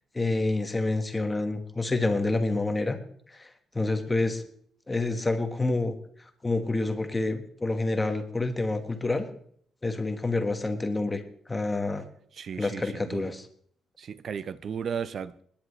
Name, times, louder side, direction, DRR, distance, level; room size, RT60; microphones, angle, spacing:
voice 1, 0.1-3.0 3.4-3.5 3.7-4.4 4.9-6.0 6.4-9.3 9.8-11.2 11.5-12.0 12.6-13.5, left 2 dB, 15° left, 1.3 m, -28 dB
voice 2, 12.4-13.3 14.0-15.4, right 7 dB, 50° right, 0.6 m, -35 dB
29.0 x 10.5 x 3.2 m
cardioid pair, 135°, 0 cm